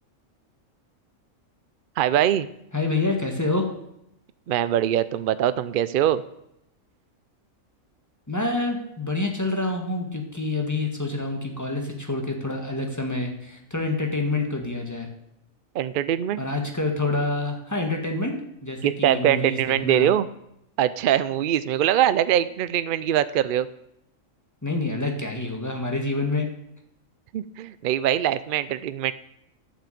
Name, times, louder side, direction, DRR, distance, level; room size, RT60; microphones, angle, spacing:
voice 1, 2.0-2.5 4.5-6.2 15.7-16.5 18.8-20.3 20.8-23.7 27.3-29.1, right 11 dB, 70° right, 15 dB, 0.5 m, -22 dB
voice 2, 2.7-3.7 8.3-15.1 16.4-18.3 18.6-20.1 24.6-26.5, left 2 dB, 15° left, 3 dB, 1.7 m, -27 dB
11.0 x 6.0 x 8.5 m, 0.80 s
omnidirectional pair, 1.4 m